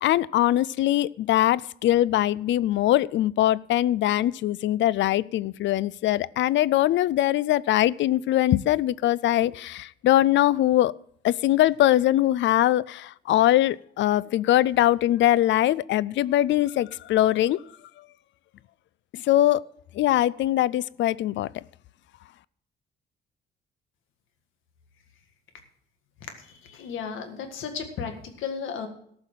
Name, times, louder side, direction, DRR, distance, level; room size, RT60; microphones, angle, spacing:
voice 1, 0.0-10.9 11.2-17.6 19.1-19.6 19.9-21.5, left 14 dB, 70° left, 22 dB, 0.4 m, -22 dB
voice 2, 26.4-28.9, left 6 dB, 85° left, 6 dB, 1.8 m, -34 dB
14.0 x 5.7 x 7.3 m, 0.66 s
cardioid pair, 90°, 20 cm